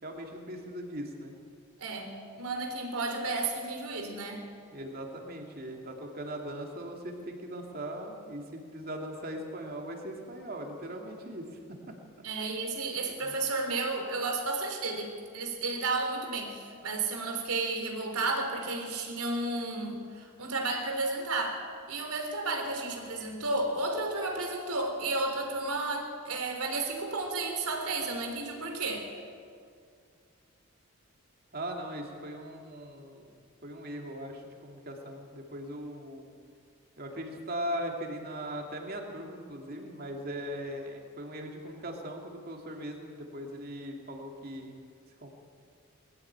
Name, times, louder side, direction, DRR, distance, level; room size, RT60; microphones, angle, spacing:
voice 1, 0.0-1.3 4.7-11.8 12.4-12.5 13.2-13.3 31.5-36.3 37.0-44.7 45.2-45.3, equal, 40° right, 1 dB, 2.7 m, -39 dB
voice 2, 1.8-2.1 2.4-4.4 12.2-29.1, right 3 dB, 80° right, 3 dB, 3.6 m, -32 dB
21.5 x 14.5 x 8.8 m, 2.2 s
head